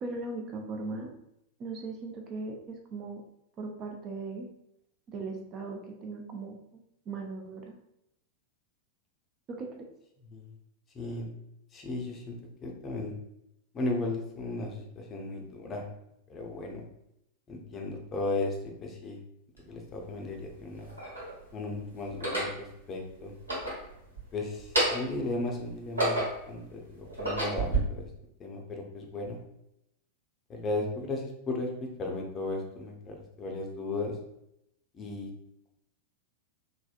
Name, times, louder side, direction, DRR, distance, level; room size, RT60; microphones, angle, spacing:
voice 1, 0.0-1.2 1.6-3.2 3.6-4.5 5.1-6.6 7.1-7.8 9.5-9.9, right 3 dB, 30° right, 2 dB, 0.4 m, -38 dB
voice 2, 10.2-10.5 10.9-11.3 11.7-12.4 12.6-13.1 13.7-15.9 16.3-16.8 17.5-19.2 19.6-20.9 21.5-23.3 24.3-28.1 28.4-29.4 30.5-34.2 34.9-35.3, left 2 dB, 25° left, 1 dB, 0.5 m, -35 dB
sound 1, 19.6-19.7 20.5-21.3 22.1-22.6 23.3-24.3 24.6-25.2 25.7-26.5 27.0-27.8, right 2 dB, 75° right, 1.2 m, -30 dB
3.4 x 2.1 x 2.3 m, 0.80 s
figure-of-eight pair, 90°, 0 cm